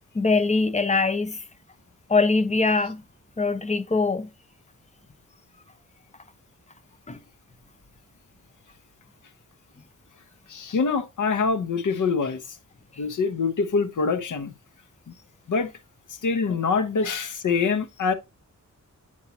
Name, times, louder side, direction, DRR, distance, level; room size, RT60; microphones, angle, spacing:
voice 1, 0.1-1.4 2.1-3.0 3.4-4.3 7.1-7.2, left 3 dB, 25° left, 0.6 m, -22 dB
voice 2, 10.5-12.6 13.0-14.5 15.1-15.2 15.5-15.7 16.1-18.1, left 5 dB, 75° left, 0.9 m, -25 dB
8.3 x 4.6 x 2.8 m
wide cardioid pair, 135°, 31 cm